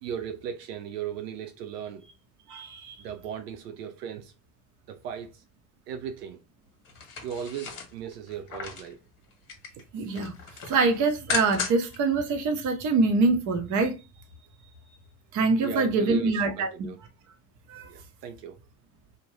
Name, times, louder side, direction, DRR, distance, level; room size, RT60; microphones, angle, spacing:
voice 1, 0.0-2.1 3.0-4.3 4.9-5.4 5.9-6.4 7.2-9.0 15.6-17.0 17.8-18.6, right 8 dB, 70° right, 0.6 m, -37 dB
voice 2, 2.5-3.0 9.9-10.3 10.7-14.0 15.3-16.7 17.7-17.9, right 3 dB, 40° right, 0.7 m, -24 dB
sound 1, 6.8-8.9 9.3-9.8 10.1-12.0 12.3-12.4, left 6 dB, 40° left, 1.1 m, -35 dB
2.6 x 2.1 x 3.1 m
hypercardioid pair, 80°, 50 cm